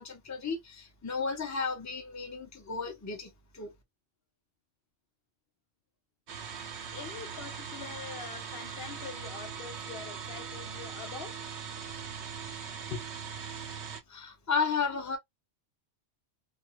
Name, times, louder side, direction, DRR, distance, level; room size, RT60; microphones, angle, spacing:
voice 1, 0.0-3.7 14.1-15.2, left 5 dB, 20° left, 0.5 m, -33 dB
sound 1, 6.3-14.0, right 6 dB, 75° right, 1.0 m, -41 dB
voice 2, 6.9-11.4 12.9-13.1, left 6 dB, 65° left, 0.7 m, -43 dB
2.4 x 2.3 x 2.8 m
omnidirectional pair, 1.2 m